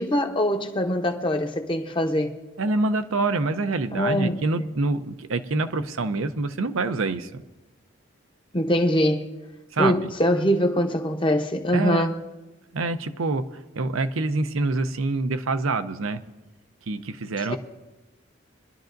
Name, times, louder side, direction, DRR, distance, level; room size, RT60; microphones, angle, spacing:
voice 1, 0.0-2.3 3.9-4.7 8.5-9.3 9.8-12.1 17.5-17.6, equal, 25° left, 0.8 m, -23 dB
voice 2, 2.6-7.4 9.7-10.1 11.7-12.1 12.7-13.5 13.8-16.2 16.9-17.6, right 3 dB, 75° right, 0.6 m, -26 dB
23.5 x 11.5 x 2.6 m
head